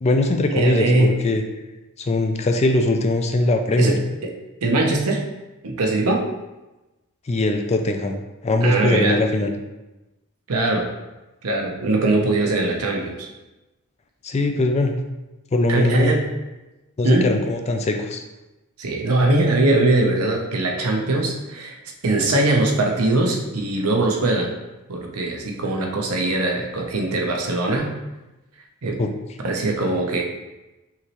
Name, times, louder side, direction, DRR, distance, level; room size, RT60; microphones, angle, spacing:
voice 1, 0.0-1.4 2.0-3.9 7.3-9.5 14.2-14.9 15.5-16.2 17.0-18.2 29.0-29.1, left 2 dB, 30° left, 5 dB, 0.4 m, -21 dB
voice 2, 0.5-1.1 3.8-4.3 4.6-5.2 5.6-6.3 8.6-9.2 10.5-10.9 11.4-13.3 15.7-16.3 17.0-17.3 18.8-21.8 22.0-24.5 24.9-27.9 28.8-29.0 29.4-30.2, right 2 dB, 75° right, 1 dB, 0.8 m, -21 dB
5.6 x 3.0 x 3.0 m, 1.0 s
head